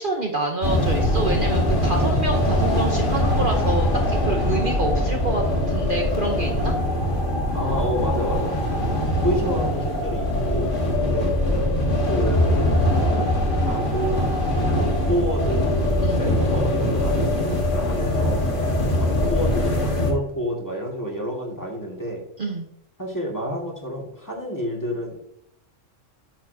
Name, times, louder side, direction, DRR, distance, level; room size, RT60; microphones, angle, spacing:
voice 1, 0.0-6.7 16.0-16.2 22.4-22.7, right 2 dB, 45° right, 1 dB, 1.0 m, -27 dB
sound 1, 0.6-20.1, left 1 dB, 40° left, 1.5 m, -22 dB
voice 2, 7.5-8.6 9.2-11.3 12.0-14.2 14.7-18.4 18.9-22.2 23.0-25.2, equal, 15° left, -2 dB, 1.9 m, -29 dB
9.1 x 7.1 x 2.7 m, 0.71 s
omnidirectional pair, 1.3 m